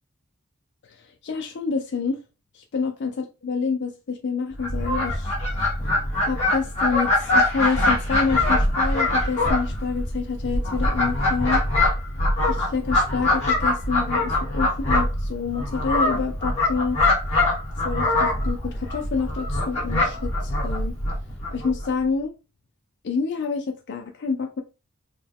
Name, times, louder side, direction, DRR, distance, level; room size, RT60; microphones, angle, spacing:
voice 1, 0.8-2.2 2.5-5.3 6.2-11.6 12.5-17.0 17.8-20.9 21.5-22.3 23.0-24.6, left 5 dB, 55° left, 0.4 m, -28 dB
Fowl, 4.6-21.9, left 2 dB, 30° left, 2.0 m, -23 dB
4.1 x 2.2 x 3.4 m
head